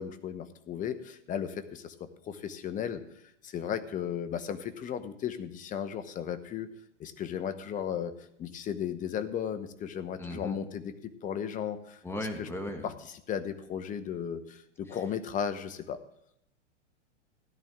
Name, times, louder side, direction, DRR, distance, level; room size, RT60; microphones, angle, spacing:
voice 1, 0.0-3.0 3.4-6.7 7.0-8.1 8.4-12.0 12.4-12.5 12.8-12.9 13.3-16.0, left 8 dB, 20° left, 11 dB, 1.0 m, -35 dB
voice 2, 10.2-10.6 12.0-12.9 14.9-15.0, left 1 dB, 5° left, 5 dB, 1.7 m, -37 dB
16.5 x 10.5 x 3.6 m, 0.74 s
hypercardioid pair, 120°, 36 cm